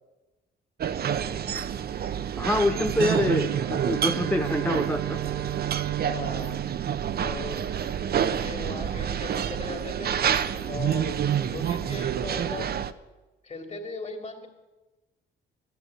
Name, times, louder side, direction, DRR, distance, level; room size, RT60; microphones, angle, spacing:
sound 1, 0.8-12.9, right 8 dB, 50° right, 0.8 m, -28 dB
voice 1, 2.4-5.2, left 1 dB, 5° left, 5 dB, 0.7 m, -26 dB
Bowed string instrument, 2.4-7.8, right 14 dB, 90° right, 0.7 m, -35 dB
voice 2, 6.0-6.6 7.2-7.6 8.1-10.2 10.7-12.7 13.4-14.5, left 3 dB, 35° left, 6 dB, 2.8 m, -38 dB
13.0 x 9.2 x 9.2 m, 1.1 s
cardioid pair, 90°, 20 cm